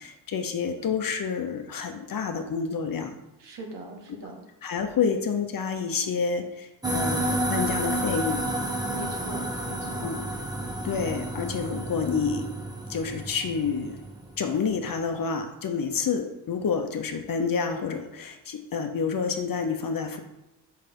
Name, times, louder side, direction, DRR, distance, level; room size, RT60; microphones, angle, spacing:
voice 1, 0.0-3.1 4.6-8.4 10.0-10.2 10.8-12.5 12.9-14.0 14.4-20.2, left 6 dB, 50° left, 6 dB, 0.9 m, -28 dB
voice 2, 3.4-4.4 8.9-10.1, right 2 dB, 75° right, 0 dB, 1.9 m, -41 dB
sound 1, 6.8-14.5, right 1 dB, 10° right, 1.2 m, -30 dB
5.6 x 5.5 x 5.3 m, 0.96 s
cardioid pair, 80°, 43 cm